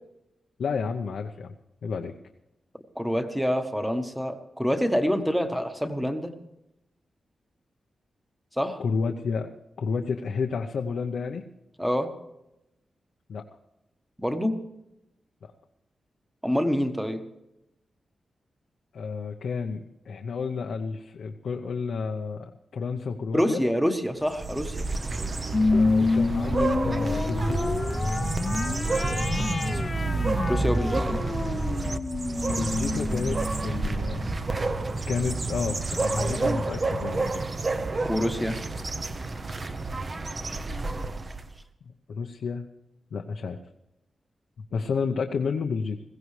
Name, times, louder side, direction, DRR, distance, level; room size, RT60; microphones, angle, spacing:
voice 1, 0.6-1.5 1.8-2.1 8.8-11.5 13.3-13.4 15.4-15.5 18.9-23.6 25.7-27.8 32.5-34.3 35.1-37.4 41.8-42.7 43.1-43.6 44.7-46.0, left 5 dB, 75° left, 3 dB, 0.8 m, -31 dB
voice 2, 2.9-6.3 8.5-8.8 11.8-12.1 14.2-14.6 16.4-17.2 23.3-24.9 30.5-31.2 38.1-38.6, equal, ahead, 7 dB, 1.1 m, -26 dB
sound 1, 24.2-41.5, right 3 dB, 30° right, 0.7 m, -29 dB
sound 2, 25.5-34.3, left 3 dB, 25° left, 0.7 m, -28 dB
21.0 x 16.0 x 3.2 m, 0.90 s
wide cardioid pair, 165°, 0 cm